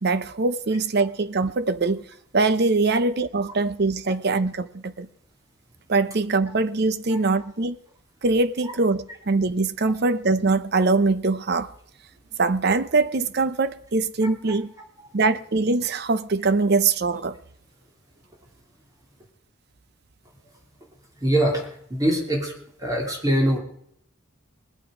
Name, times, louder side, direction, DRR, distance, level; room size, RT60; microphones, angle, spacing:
voice 1, 0.0-2.1 2.3-5.1 5.9-7.8 8.2-11.7 12.4-14.7 15.1-17.4, right 3 dB, 55° right, 0.7 m, -22 dB
voice 2, 7.1-7.4 14.2-14.3 21.2-22.5 22.8-23.6, right 1 dB, 20° right, 2.7 m, -23 dB
20.5 x 8.7 x 5.0 m
head